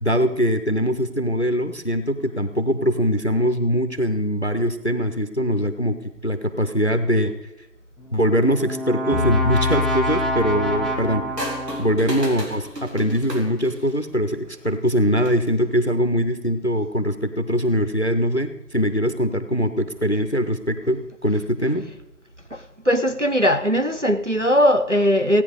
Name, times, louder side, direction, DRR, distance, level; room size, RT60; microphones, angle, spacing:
voice 1, 0.0-6.0 6.2-7.3 8.1-11.2 11.8-21.9, equal, 45° left, 0.7 m, -22 dB
Brass instrument, 8.0-12.2, right 1 dB, ahead, 0.8 m, -27 dB
sound 1, 9.1-11.9, left 5 dB, 35° right, 2.2 m, -27 dB
sound 2, 11.4-14.1 15.1-15.5, equal, 85° right, 3.2 m, -33 dB
voice 2, 22.9-25.4, equal, 50° right, 0.6 m, -19 dB
16.5 x 9.1 x 5.0 m
figure-of-eight pair, 175°, 48 cm